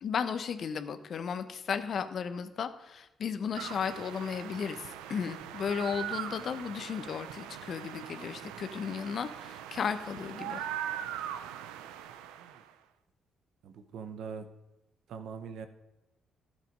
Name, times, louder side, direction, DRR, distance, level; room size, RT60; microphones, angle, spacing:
voice 1, 0.0-10.7, left 6 dB, 60° left, 10 dB, 0.8 m, -35 dB
sound 1, 3.5-12.7, right 10 dB, 90° right, 0.5 m, -41 dB
voice 2, 13.6-14.5 15.1-15.7, right 6 dB, 70° right, 9 dB, 0.9 m, -42 dB
12.0 x 7.5 x 5.2 m, 0.98 s
supercardioid pair, 60°, 0 cm